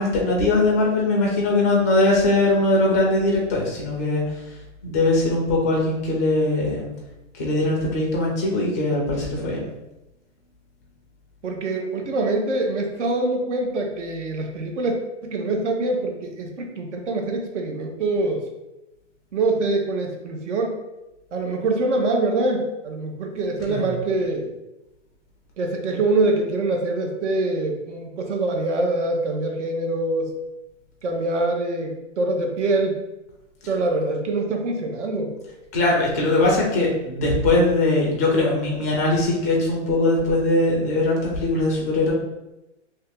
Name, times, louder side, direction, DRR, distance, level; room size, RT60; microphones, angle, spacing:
voice 1, 0.0-4.2 4.8-6.9 7.4-9.6 23.7-23.9 35.7-42.1, left 2 dB, 15° left, -2 dB, 0.3 m, -21 dB
voice 2, 11.4-14.9 15.2-18.4 19.3-20.8 21.3-24.5 25.6-30.3 31.0-33.0 33.7-35.4, right 2 dB, 70° right, 2 dB, 1.0 m, -24 dB
2.9 x 2.7 x 3.5 m, 0.95 s
hypercardioid pair, 150°, 37 cm